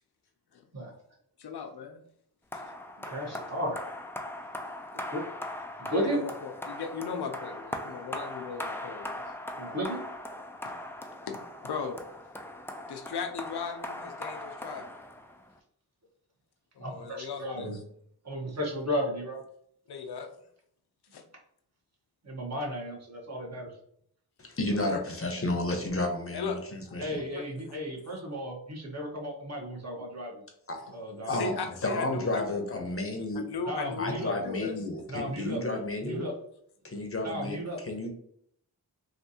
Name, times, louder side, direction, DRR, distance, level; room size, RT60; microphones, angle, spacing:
voice 1, 1.4-2.0 2.5-2.6 6.0-9.2 10.6-10.7 11.2-11.4 11.6-12.0 12.9-14.9 16.8-17.8 19.9-20.4 21.1-21.2 24.7-25.0 26.3-26.6 27.3-27.4 31.3-32.5 33.1-34.8, left 5 dB, 65° left, 5 dB, 0.6 m, -37 dB
sound 1, 2.5-15.5, left 1 dB, 5° left, 0.4 m, -40 dB
voice 2, 3.1-3.8 4.9-5.3 5.8-6.2 9.6-10.0 16.8-17.8 18.2-19.4 22.2-23.7 27.0-30.4 30.9-31.4 33.7-34.3 35.1-35.6 36.0-36.3 37.2-37.8, equal, 40° right, -2 dB, 1.4 m, -34 dB
voice 3, 24.4-27.2 30.7-30.8 31.3-31.6 31.8-33.4 34.0-36.3 36.8-38.1, left 2 dB, 30° left, 3 dB, 0.8 m, -32 dB
3.4 x 2.6 x 2.8 m, 0.67 s
cardioid pair, 40°, 42 cm